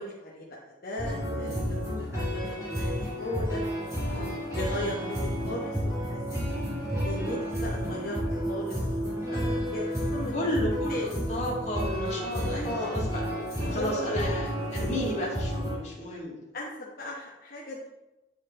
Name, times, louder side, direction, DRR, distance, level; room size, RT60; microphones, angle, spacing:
voice 1, 0.0-4.2 4.5-6.2 7.0-9.8 10.1-10.3 10.9-11.0 12.6-13.0 13.6-14.1 16.5-17.9, left 1 dB, 55° left, -5 dB, 1.1 m, -37 dB
sound 1, 1.0-15.7, equal, 15° right, 2.5 m, -31 dB
voice 2, 10.3-13.2 13.7-16.4, left 1 dB, 40° left, -6 dB, 2.1 m, -33 dB
8.3 x 5.1 x 3.7 m, 1.0 s
head